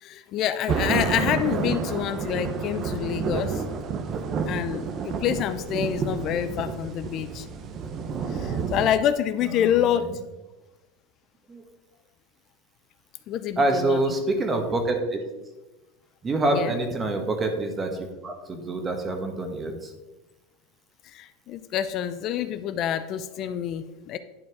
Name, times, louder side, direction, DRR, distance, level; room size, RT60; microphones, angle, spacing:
voice 1, 0.0-3.6 4.5-7.5 8.3-10.1 13.3-14.0 16.5-16.7 21.0-24.2, left 10 dB, 50° left, 12 dB, 0.5 m, -27 dB
sound 1, 0.7-8.9, right 5 dB, 40° right, 0.9 m, -29 dB
voice 2, 9.4-10.1 11.5-11.6 13.6-15.2 16.2-17.9 18.2-19.9, right 2 dB, 25° right, 5 dB, 1.6 m, -26 dB
11.0 x 4.5 x 4.8 m, 1.1 s
supercardioid pair, 115°, 0 cm